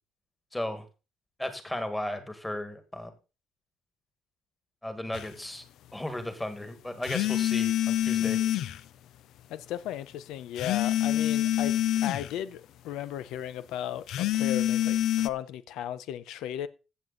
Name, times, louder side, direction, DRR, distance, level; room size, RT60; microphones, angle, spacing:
voice 1, 0.5-0.8 1.4-3.1 4.8-5.6 5.9-8.4, left 1 dB, 5° left, 1.6 m, -35 dB
sound 1, 5.1-5.3 7.0-8.8 10.6-12.3 14.1-15.3, left 12 dB, 60° left, 0.6 m, -26 dB
voice 2, 8.2-8.5 9.5-16.7, left 11 dB, 85° left, 0.8 m, -36 dB
15.5 x 7.7 x 3.9 m
cardioid pair, 175°, 0 cm